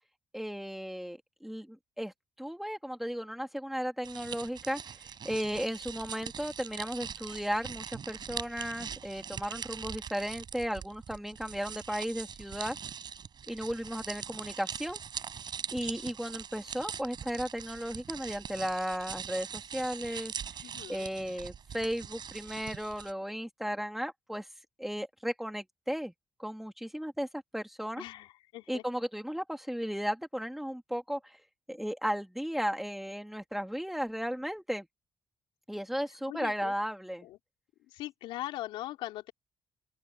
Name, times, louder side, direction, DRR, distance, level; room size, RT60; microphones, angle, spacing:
voice 1, 0.3-5.0 5.2-12.8 13.5-15.0 15.7-20.3 20.9-24.5 24.8-26.1 26.4-28.0 28.7-31.4 31.7-34.9 35.7-37.3, equal, 5° right, 3.0 m, -35 dB
sound 1, 4.0-23.1, right 7 dB, 60° right, 6.4 m, -42 dB
voice 2, 20.6-21.1 28.0-28.8 36.1-36.7 37.2-37.4 37.8-39.3, left 15 dB, 90° left, 3.8 m, -41 dB
open air
supercardioid pair, 60°, 9 cm